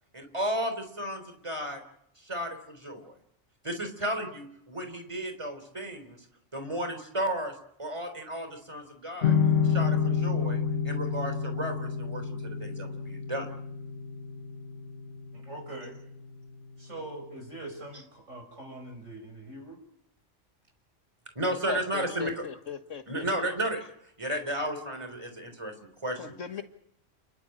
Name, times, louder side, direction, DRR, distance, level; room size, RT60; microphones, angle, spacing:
voice 1, 0.1-1.8 2.2-3.1 3.6-6.2 6.5-7.5 7.8-9.3 9.6-13.5 21.4-22.4 23.1-23.9 24.2-26.4, right 1 dB, 25° right, 6 dB, 3.8 m, -33 dB
sound 1, 9.2-16.4, left 6 dB, 55° left, 1.2 m, -29 dB
voice 2, 15.3-16.0 16.8-19.8, right 2 dB, 90° right, 4 dB, 6.4 m, -43 dB
voice 3, 21.7-23.5 26.2-26.6, left 5 dB, 90° left, 7 dB, 2.0 m, -38 dB
29.5 x 11.5 x 9.0 m, 0.76 s
omnidirectional pair, 1.3 m